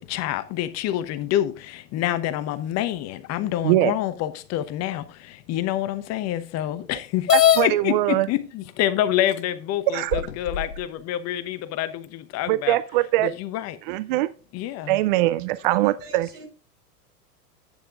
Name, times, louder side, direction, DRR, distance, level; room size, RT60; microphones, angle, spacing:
voice 1, 0.0-5.0 5.5-7.3 7.6-12.8 13.2-13.8 14.5-15.0, left 12 dB, 35° left, 0.9 m, -27 dB
sound 1, 7.3-7.7 8.7-8.8 9.4-9.5 10.1-10.8, left 10 dB, 85° left, 1.0 m, -19 dB
voice 2, 7.3-8.3 9.9-10.2 12.5-13.3 13.9-14.3 14.9-16.3, right 16 dB, 35° right, 0.4 m, -22 dB
voice 3, 15.7-16.5, right 5 dB, 70° right, 5.0 m, -41 dB
11.0 x 8.9 x 2.5 m
hypercardioid pair, 100°, 48 cm